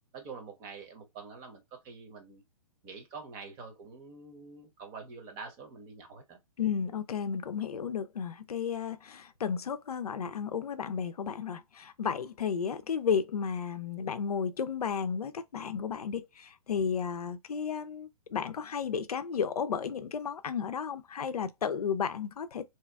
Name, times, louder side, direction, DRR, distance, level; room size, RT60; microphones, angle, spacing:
voice 1, 0.1-2.4 2.8-6.4, right 4 dB, 30° right, 0.9 m, -46 dB
voice 2, 6.6-22.6, left 7 dB, 90° left, 0.4 m, -33 dB
2.8 x 2.3 x 2.2 m
hypercardioid pair, 130°, 19 cm